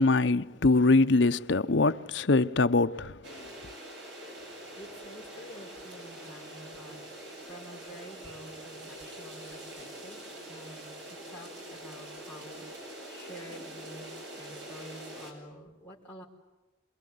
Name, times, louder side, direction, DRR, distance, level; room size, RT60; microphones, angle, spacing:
voice 1, 0.0-3.2, left 3 dB, 75° left, 0.8 m, -23 dB
sound 1, 3.2-15.3, right 1 dB, 75° right, 8.0 m, -44 dB
voice 2, 4.7-12.6 13.1-16.3, equal, 10° left, 4.5 m, -49 dB
28.0 x 22.0 x 9.5 m
head